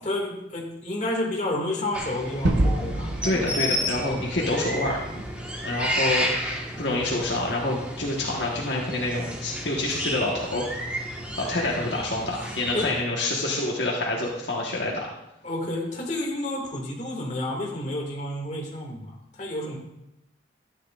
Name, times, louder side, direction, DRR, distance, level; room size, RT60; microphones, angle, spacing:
voice 1, 0.0-3.6 6.8-7.0 12.7-12.9 15.4-19.8, left 1 dB, 40° left, -2 dB, 2.2 m, -30 dB
sound 1, 1.9-13.0, equal, 5° right, 1.4 m, -32 dB
Gunshot gunfire / Fireworks / Boom, 2.4-7.2, right 1 dB, 70° right, 0.9 m, -30 dB
voice 2, 3.2-5.0 5.6-10.6 11.4-15.1, left 2 dB, 65° left, -3 dB, 1.4 m, -27 dB
13.0 x 9.7 x 2.5 m, 0.87 s
head